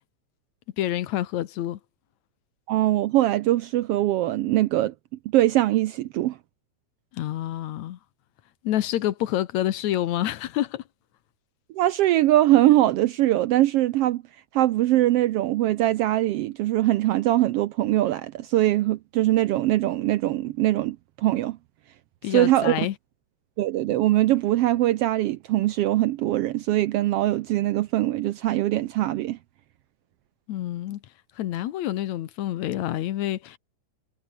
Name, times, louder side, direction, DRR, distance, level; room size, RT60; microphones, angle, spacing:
voice 1, 0.8-1.8 7.1-8.0 8.6-10.8 22.2-22.9 30.5-31.0 31.4-33.6, left 13 dB, 75° left, 2.3 m, -27 dB
voice 2, 2.7-4.9 5.3-6.4 11.7-14.2 14.5-21.6 22.2-22.8 23.6-29.4, right 15 dB, 80° right, 1.3 m, -22 dB
omnidirectional pair, 3.4 m